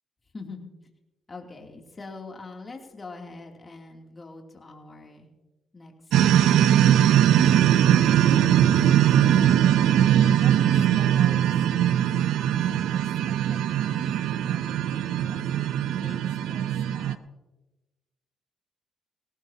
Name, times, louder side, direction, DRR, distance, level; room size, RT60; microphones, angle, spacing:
voice 1, 0.3-0.7 1.3-5.3 5.7-5.9 6.2-6.6 7.3-8.0 9.1-9.7 10.4-11.5 12.6-13.0 13.3-15.7 16.0-17.3, left 3 dB, 30° left, 1 dB, 2.9 m, -44 dB
sound 1, 6.1-17.2, right 10 dB, 80° right, 0.6 m, -20 dB
18.5 x 18.0 x 2.9 m, 1.1 s
cardioid pair, 90°, 0 cm